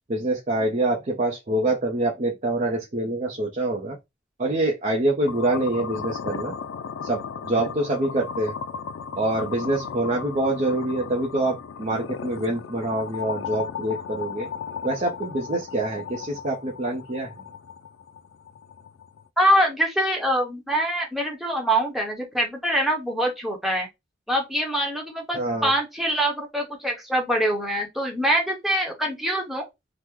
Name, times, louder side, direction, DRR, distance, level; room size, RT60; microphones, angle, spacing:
voice 1, 0.1-4.0 4.4-6.5 7.0-8.5 9.1-14.5 14.8-17.3 25.3-25.7, right 2 dB, 40° right, 0.6 m, -25 dB
sound 1, 5.3-19.3, left 6 dB, 90° left, 0.3 m, -36 dB
voice 2, 19.4-23.9 24.3-29.7, right 1 dB, ahead, 1.0 m, -24 dB
3.0 x 2.1 x 3.5 m
head